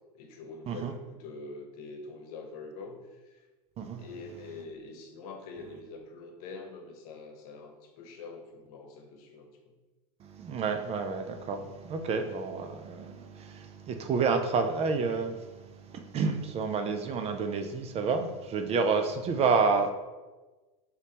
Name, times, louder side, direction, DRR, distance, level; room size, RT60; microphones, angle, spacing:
voice 1, 0.1-3.4 4.0-9.6, left 3 dB, 70° left, 4 dB, 0.9 m, -45 dB
voice 2, 3.8-4.1 10.2-19.9, right 4 dB, 30° right, 6 dB, 0.4 m, -29 dB
5.0 x 3.2 x 2.9 m, 1.2 s
supercardioid pair, 110°, 20 cm